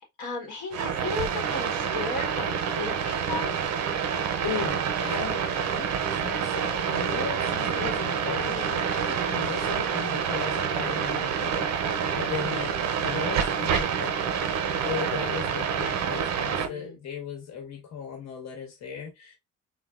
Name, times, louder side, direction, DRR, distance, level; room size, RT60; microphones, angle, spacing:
voice 1, 0.2-3.6 16.4-17.0, left 3 dB, 85° left, 1.2 m, -35 dB
sound 1, 0.7-16.7, right 7 dB, 65° right, 0.6 m, -27 dB
voice 2, 4.4-5.5 5.7-19.4, left 7 dB, 60° left, 1.1 m, -37 dB
3.3 x 2.1 x 2.3 m
cardioid pair, 90°, 30 cm